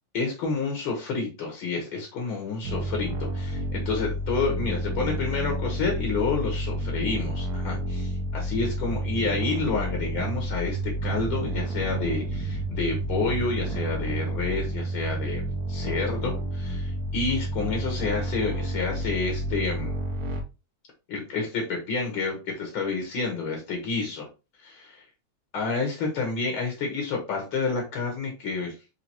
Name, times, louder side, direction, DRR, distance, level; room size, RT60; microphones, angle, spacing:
voice 1, 0.1-15.4 15.7-19.9 21.1-24.3 24.6-25.0 25.5-28.7, left 4 dB, 70° left, 0 dB, 1.8 m, -29 dB
sound 1, 2.6-20.4, right 1 dB, 65° right, 1.0 m, -30 dB
4.6 x 3.4 x 2.8 m, 0.29 s
omnidirectional pair, 2.4 m